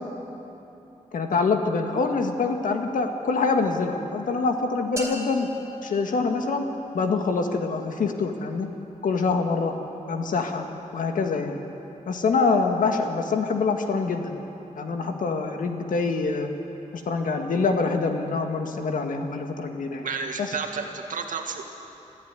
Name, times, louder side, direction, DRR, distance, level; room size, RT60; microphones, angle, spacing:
voice 1, 1.1-5.5 5.8-6.7 6.9-8.7 9.0-9.7 10.1-10.6 10.9-11.6 12.1-14.3 14.8-16.5 17.1-20.0, left 4 dB, 80° left, 4 dB, 1.9 m, -25 dB
sound 1, 5.0-6.9, right 1 dB, 20° right, 4.1 m, -39 dB
voice 2, 20.0-21.6, right 5 dB, 80° right, 3 dB, 2.1 m, -31 dB
24.0 x 14.0 x 9.7 m, 3.0 s
wide cardioid pair, 155°, 13 cm